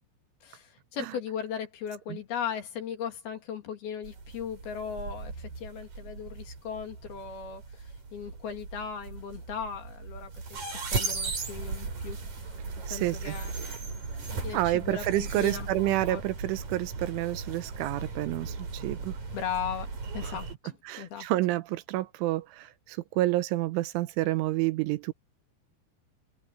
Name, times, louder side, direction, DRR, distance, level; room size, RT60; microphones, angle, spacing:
voice 1, 0.4-7.6 8.1-12.2 12.9-13.5 14.2-16.2 19.3-19.9 20.1-21.3, left 7 dB, 60° left, 4.1 m, -37 dB
sound 1, 4.0-20.5, right 4 dB, 40° right, 5.9 m, -37 dB
voice 2, 12.9-13.4 14.5-19.2 20.2-20.3 20.9-25.1, right 16 dB, 85° right, 3.5 m, -29 dB
open air
omnidirectional pair, 5.4 m